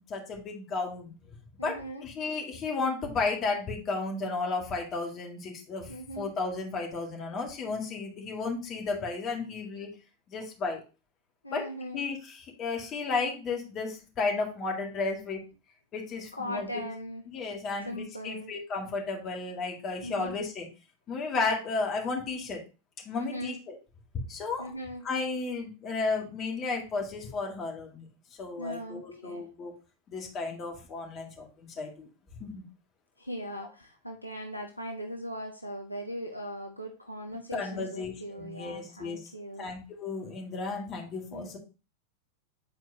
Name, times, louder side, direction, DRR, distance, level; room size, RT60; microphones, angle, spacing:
voice 1, 0.1-1.1 1.6-5.9 6.2-9.9 10.3-10.8 11.5-11.7 11.9-15.4 15.9-16.7 17.3-20.7 21.1-22.6 23.0-23.8 24.3-24.7 25.0-28.1 28.4-29.7 30.1-32.1 32.4-32.6 37.5-39.3 39.6-41.6, left 4 dB, 30° left, 1 dB, 2.1 m, -33 dB
voice 2, 1.6-2.1 5.9-6.3 11.4-12.0 16.3-17.2 17.8-18.5 20.0-20.4 23.2-23.5 24.6-25.0 28.6-29.5 33.2-39.7 41.3-41.5, equal, 85° left, 2 dB, 0.8 m, -39 dB
9.0 x 4.4 x 2.8 m, 0.32 s
figure-of-eight pair, 90°, 0 cm